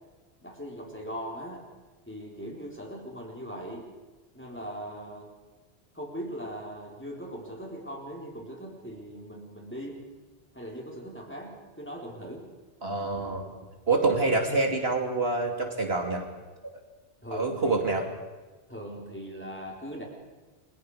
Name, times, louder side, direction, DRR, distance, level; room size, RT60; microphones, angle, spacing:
voice 1, 0.4-1.7 2.1-3.9 4.3-5.3 5.9-10.0 10.5-12.5 17.2-17.9 18.7-20.0, equal, 10° left, -2 dB, 4.3 m, -40 dB
voice 2, 12.8-13.4 13.9-16.2 17.3-18.0, right 3 dB, 65° right, 2 dB, 3.0 m, -26 dB
29.5 x 23.5 x 5.0 m, 1.2 s
omnidirectional pair, 1.1 m